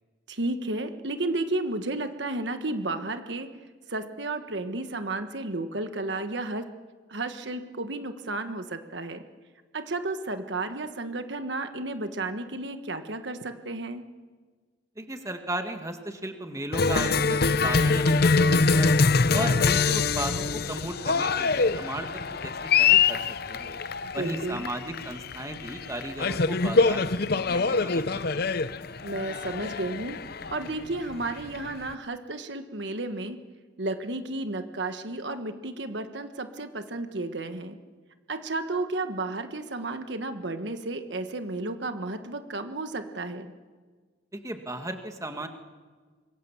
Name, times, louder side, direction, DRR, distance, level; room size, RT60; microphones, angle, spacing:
voice 1, 0.3-3.5 3.9-6.6 7.1-9.2 9.7-14.0 24.0-24.6 29.0-30.2 30.5-33.4 33.8-37.8 38.3-43.5, right 2 dB, 65° right, 8 dB, 1.4 m, -32 dB
voice 2, 15.0-19.0 19.3-23.2 23.5-23.7 24.1-28.6 44.3-45.5, right 1 dB, 15° right, 6 dB, 1.9 m, -35 dB
Cheering, 16.7-31.9, left 4 dB, 55° left, 0.7 m, -24 dB
26.5 x 22.5 x 7.3 m, 1.4 s
head